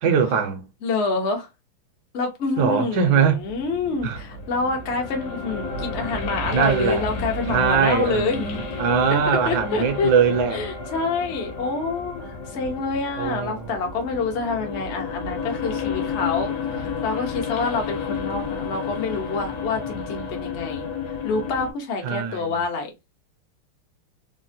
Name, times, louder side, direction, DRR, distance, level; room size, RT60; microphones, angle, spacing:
voice 1, 0.0-0.7 2.6-3.4 4.0-4.2 6.5-7.0 7.5-10.6 13.2-13.7 22.0-22.6, right 6 dB, 70° right, 1.0 m, -21 dB
voice 2, 0.8-1.5 2.1-8.5 9.1-9.2 9.5-10.1 10.5-20.9 21.2-22.9, left 3 dB, 80° left, 0.6 m, -27 dB
sound 1, 3.4-21.7, left 4 dB, 65° left, 1.1 m, -32 dB
3.6 x 2.1 x 2.6 m
omnidirectional pair, 2.4 m